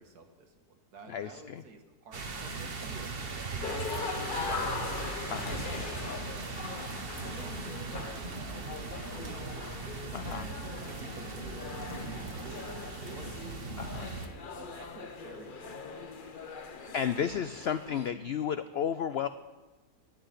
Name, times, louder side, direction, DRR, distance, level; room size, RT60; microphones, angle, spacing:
voice 1, 0.0-5.0 5.9-9.6 10.2-14.1 14.6-16.5 16.9-17.6 17.9-18.4, right 3 dB, 85° right, 5 dB, 2.0 m, -52 dB
voice 2, 1.1-1.6 5.3-5.6 10.1-10.4 13.8-14.1 16.9-19.3, left 8 dB, 85° left, 12 dB, 0.5 m, -33 dB
sound 1, 2.1-14.3, right 3 dB, 40° right, 1.2 m, -39 dB
sound 2, 3.6-18.1, left 4 dB, 40° left, 0.9 m, -41 dB
11.5 x 7.7 x 10.0 m, 1.2 s
omnidirectional pair, 1.6 m